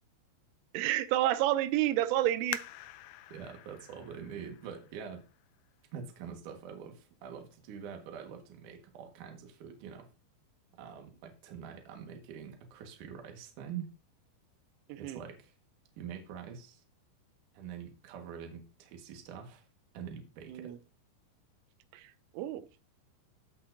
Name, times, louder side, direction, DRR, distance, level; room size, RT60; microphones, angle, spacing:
voice 1, 0.7-2.6 14.9-15.2 20.5-20.8 21.9-22.0 22.3-22.7, right 14 dB, 85° right, 3.1 m, -29 dB
sound 1, 2.5-5.9 6.5-6.6 7.2-7.6 8.0-8.1, left 14 dB, 85° left, 2.5 m, -45 dB
voice 2, 3.3-5.2 5.9-10.1 10.7-13.9 15.0-15.5 16.0-16.8 17.5-19.7 19.9-20.8, right 7 dB, 60° right, 2.2 m, -45 dB
15.5 x 5.7 x 2.6 m
omnidirectional pair, 5.6 m